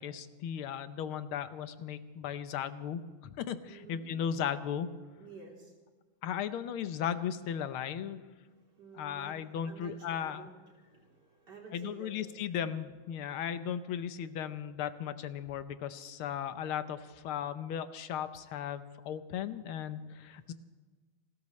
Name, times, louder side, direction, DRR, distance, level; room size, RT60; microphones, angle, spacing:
voice 1, 0.0-4.9 6.2-8.2 9.0-10.5 11.7-20.5, left 9 dB, 80° left, 11 dB, 1.7 m, -36 dB
voice 2, 3.7-4.1 5.2-5.7 8.5-9.4 9.6-12.3 13.2-13.3, right 4 dB, 55° right, -2 dB, 4.0 m, -51 dB
29.0 x 13.5 x 3.2 m, 1.4 s
omnidirectional pair, 2.3 m